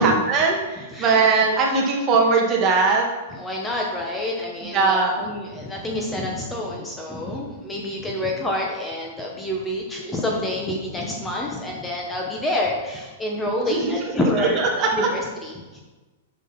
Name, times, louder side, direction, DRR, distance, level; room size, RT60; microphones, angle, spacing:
voice 1, 0.0-3.1 4.7-5.2 13.7-15.1, right 4 dB, 30° right, 0 dB, 1.7 m, -20 dB
voice 2, 3.3-14.6 14.9-15.8, left 1 dB, 10° left, -1 dB, 1.1 m, -28 dB
7.3 x 6.4 x 5.7 m, 1.2 s
hypercardioid pair, 145°, 0 cm